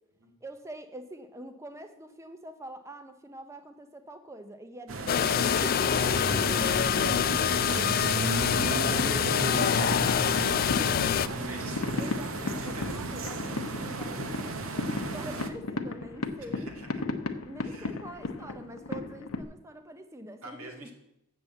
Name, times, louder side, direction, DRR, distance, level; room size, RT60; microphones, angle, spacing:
voice 1, 0.4-5.8 6.1-6.8 12.0-16.7 17.4-20.9, right 1 dB, 15° right, 7 dB, 0.6 m, -45 dB
sound 1, 4.9-15.5, right 3 dB, 65° right, 0.9 m, -35 dB
sound 2, 5.1-11.3, left 8 dB, 40° left, 0.3 m, -25 dB
voice 2, 6.1-13.1 16.4-17.0 17.6-18.0 20.4-20.9, right 2 dB, 85° right, 2 dB, 2.0 m, -46 dB
sound 3, 8.5-19.4, left 3 dB, 85° left, 0.8 m, -36 dB
7.4 x 7.0 x 7.9 m, 0.83 s
head